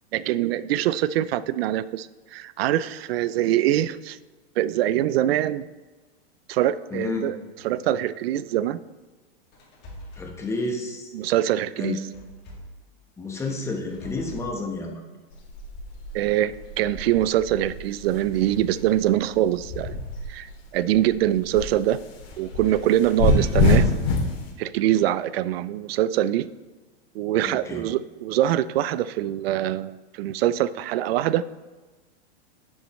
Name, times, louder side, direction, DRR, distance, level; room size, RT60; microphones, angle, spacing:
voice 1, 0.1-4.2 4.6-5.7 6.5-8.8 11.1-12.1 16.1-20.0 20.3-22.0 22.4-23.9 24.6-26.5 27.1-31.4, right 13 dB, 70° right, 17 dB, 0.5 m, -24 dB
voice 2, 6.9-7.3 10.2-11.1 11.8-12.2 13.2-15.0 27.4-27.8, left 2 dB, 10° left, 1 dB, 1.0 m, -30 dB
sound 1, 9.5-10.4 12.1-12.8 13.7-14.6, left 1 dB, 30° left, 2.1 m, -42 dB
sound 2, 15.3-20.6 20.9-24.4, left 3 dB, 65° left, 2.2 m, -25 dB
10.5 x 7.3 x 3.1 m, 1.3 s
supercardioid pair, 150°, 32 cm